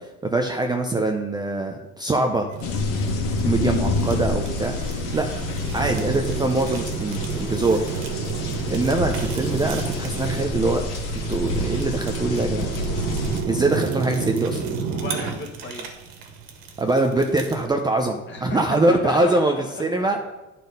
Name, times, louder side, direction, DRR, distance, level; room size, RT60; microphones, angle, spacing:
voice 1, 0.0-2.5 3.4-4.7 5.1-5.3 5.7-7.8 8.7-10.8 11.3-12.7 13.4-14.6 16.8-19.5 19.8-20.2, right 2 dB, 10° right, 3 dB, 0.5 m, -23 dB
Fire, 2.5-17.7, right 6 dB, 80° right, 1.6 m, -31 dB
sound 1, 2.6-13.4, left 3 dB, 65° left, 1.7 m, -28 dB
voice 2, 14.9-15.9 18.3-20.2, left 4 dB, 35° left, 2 dB, 1.5 m, -34 dB
10.5 x 4.2 x 5.2 m, 1.0 s
cardioid pair, 135°, 34 cm